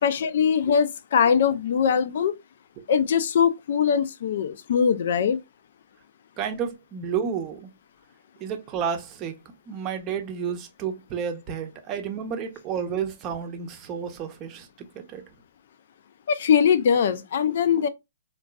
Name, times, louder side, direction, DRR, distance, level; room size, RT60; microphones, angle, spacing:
voice 1, 0.0-2.4 2.9-5.4 16.3-17.9, left 7 dB, 55° left, 0.3 m, -21 dB
voice 2, 6.4-7.7 8.4-9.4 9.7-15.3, right 7 dB, 30° right, 0.6 m, -31 dB
3.7 x 2.3 x 2.2 m
hypercardioid pair, 130°, 0 cm